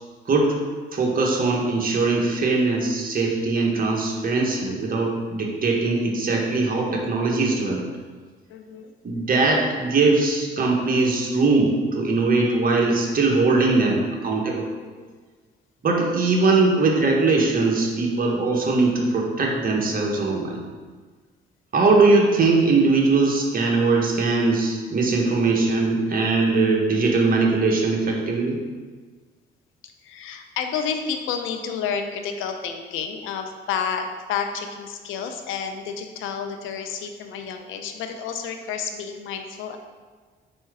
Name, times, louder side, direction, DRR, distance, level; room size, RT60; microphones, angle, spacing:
voice 1, 0.9-7.8 9.0-14.6 15.8-20.6 21.7-28.6, right 3 dB, 45° right, 0 dB, 1.2 m, -21 dB
voice 2, 4.7-5.1 8.5-8.9 14.6-15.1 29.8-39.8, left 6 dB, 90° left, 6 dB, 0.6 m, -30 dB
4.5 x 4.3 x 4.8 m, 1.5 s
cardioid pair, 90°, 20 cm